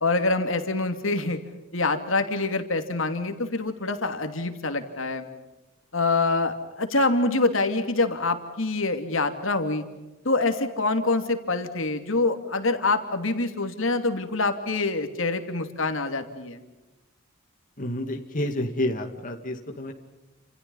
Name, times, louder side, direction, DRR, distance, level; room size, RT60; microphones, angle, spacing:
voice 1, 0.0-1.4 1.7-5.3 5.9-9.8 10.2-16.6, left 3 dB, 70° left, 7 dB, 2.9 m, -25 dB
voice 2, 17.8-19.9, left 1 dB, 40° left, 3 dB, 2.3 m, -29 dB
30.0 x 28.0 x 5.7 m, 1.1 s
head